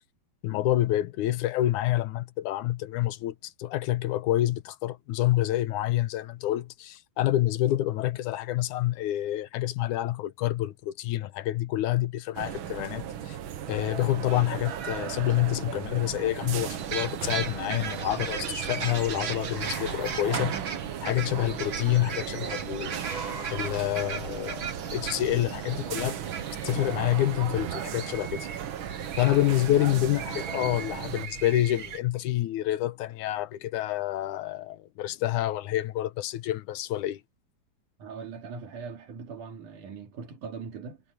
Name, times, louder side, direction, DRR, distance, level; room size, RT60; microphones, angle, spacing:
voice 1, 0.4-13.4 13.7-20.6 21.0-23.0 23.5-26.2 26.6-28.5 29.2-37.2, left 14 dB, 90° left, 2.3 m, -28 dB
sound 1, 12.3-31.3, right 10 dB, 60° right, 1.3 m, -36 dB
sound 2, 16.8-32.0, right 6 dB, 45° right, 2.2 m, -38 dB
sound 3, 19.5-21.1 22.9-24.3, equal, 10° left, 4.3 m, -43 dB
voice 2, 38.0-41.0, right 5 dB, 90° right, 4.3 m, -40 dB
omnidirectional pair, 3.5 m